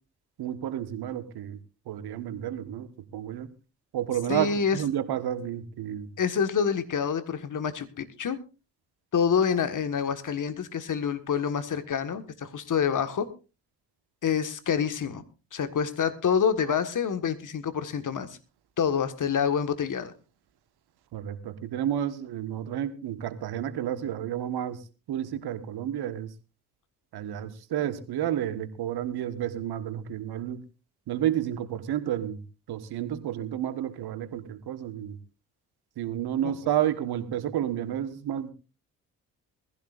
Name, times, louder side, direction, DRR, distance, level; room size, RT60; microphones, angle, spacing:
voice 1, 0.4-1.6 1.9-3.5 3.9-6.1 21.1-24.8 25.1-26.3 27.1-30.6 31.1-32.4 32.7-35.2 36.0-38.5, right 11 dB, 60° right, 11 dB, 1.5 m, -31 dB
voice 2, 4.3-4.8 6.2-8.4 9.1-13.3 14.2-15.2 15.5-18.4 18.8-20.1 36.4-36.5, left 7 dB, 45° left, 10 dB, 1.7 m, -27 dB
21.0 x 15.5 x 2.5 m, 0.31 s
hypercardioid pair, 40°, 43 cm